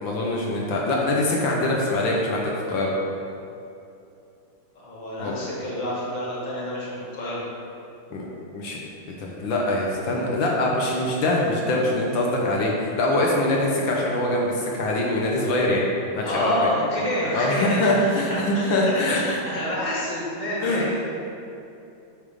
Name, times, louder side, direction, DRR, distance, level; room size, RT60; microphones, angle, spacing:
voice 1, 0.0-2.9 5.2-5.4 8.1-8.3 8.5-8.8 9.1-15.8 16.1-16.7 17.3-19.4 20.6-21.0, left 1 dB, 75° left, -2 dB, 1.6 m, -23 dB
voice 2, 4.7-7.4 16.2-21.0, left 1 dB, 25° left, -7 dB, 1.4 m, -28 dB
8.6 x 3.5 x 5.0 m, 2.7 s
omnidirectional pair, 2.2 m